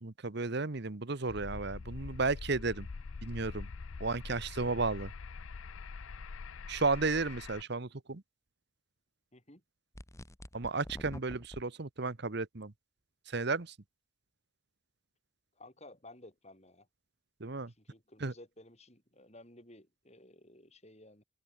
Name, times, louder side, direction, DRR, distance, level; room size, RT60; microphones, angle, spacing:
voice 1, 0.0-2.9 3.2-3.7 4.0-5.1 6.7-8.2 10.5-12.7 13.3-13.7 17.4-17.7 18.2-18.3, right 3 dB, 55° right, 1.0 m, -33 dB
sound 1, 1.3-7.6, left 4 dB, 75° left, 0.6 m, -44 dB
voice 2, 9.3-9.6 15.6-16.9 17.7-21.2, left 1 dB, 30° left, 7.6 m, -55 dB
sound 2, 9.9-11.6, equal, 15° left, 1.6 m, -46 dB
open air
head